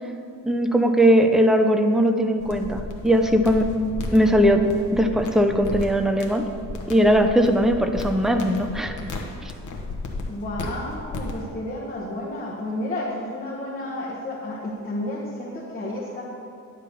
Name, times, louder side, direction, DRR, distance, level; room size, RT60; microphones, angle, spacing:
voice 1, 0.4-3.7 4.1-6.5 6.9-9.0, equal, ahead, 6 dB, 0.4 m, -19 dB
sound 1, 2.4-11.5, left 2 dB, 65° left, 1.1 m, -34 dB
voice 2, 10.3-16.2, left 1 dB, 25° left, -6 dB, 1.2 m, -31 dB
10.5 x 3.7 x 6.8 m, 2.6 s
wide cardioid pair, 145°, 32 cm